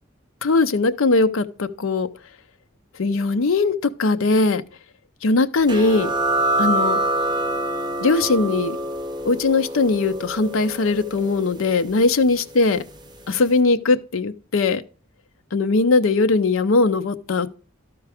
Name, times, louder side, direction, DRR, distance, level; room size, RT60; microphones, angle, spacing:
voice 1, 0.4-2.1 3.0-4.6 5.2-6.1 6.6-7.0 8.0-8.8 9.2-12.8 13.3-14.8 15.5-17.5, left 3 dB, 80° left, 0.6 m, -20 dB
sound 1, 5.7-12.9, right 1 dB, 20° right, 0.9 m, -26 dB
12.5 x 4.7 x 4.8 m
head